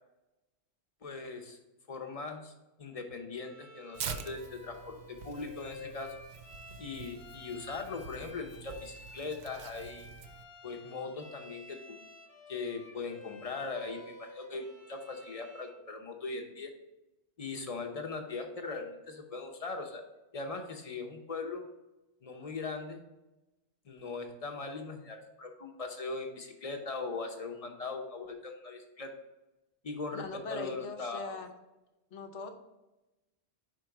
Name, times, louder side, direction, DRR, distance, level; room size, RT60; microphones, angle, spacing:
voice 1, 1.0-1.6 1.9-2.5 2.8-6.2 6.8-10.1 10.6-12.0 12.5-16.7 17.4-20.0 20.3-21.6 22.2-23.0 23.8-29.1 29.8-31.4, left 3 dB, 35° left, 4 dB, 0.8 m, -40 dB
Bowed string instrument, 3.3-15.8, left 2 dB, 70° left, 1.1 m, -52 dB
Tearing, 3.9-10.4, right 6 dB, 65° right, 0.7 m, -45 dB
voice 2, 30.1-31.5 32.1-32.6, left 4 dB, 90° left, 5 dB, 1.1 m, -40 dB
5.1 x 4.5 x 4.6 m, 1.0 s
omnidirectional pair, 1.2 m